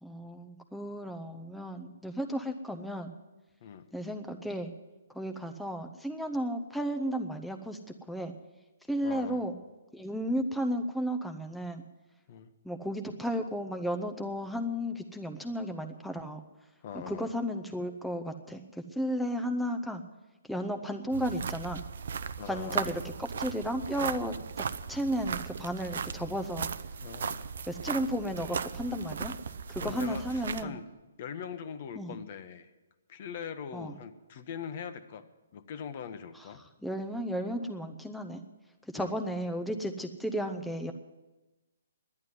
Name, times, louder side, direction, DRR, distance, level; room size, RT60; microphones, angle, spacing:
voice 1, 0.0-3.1 3.9-4.7 5.1-7.8 8.1-8.3 8.9-9.5 9.9-11.8 12.6-16.4 16.9-20.0 20.5-21.8 22.5-24.3 24.9-26.7 27.7-29.3 29.7-30.7 32.0-32.2 33.7-34.0 36.3-36.5 36.8-38.4 38.9-40.9, equal, ahead, 4 dB, 0.7 m, -34 dB
voice 2, 9.0-9.5 12.3-12.5 16.8-17.3 22.4-22.9 27.0-27.5 29.8-30.8 31.2-32.7 33.1-35.3 35.5-36.6 38.9-39.1, left 7 dB, 45° left, 11 dB, 1.0 m, -41 dB
sound 1, 21.1-30.6, right 6 dB, 60° right, 0.6 m, -37 dB
11.0 x 9.6 x 9.5 m, 1.1 s
figure-of-eight pair, 135°, 0 cm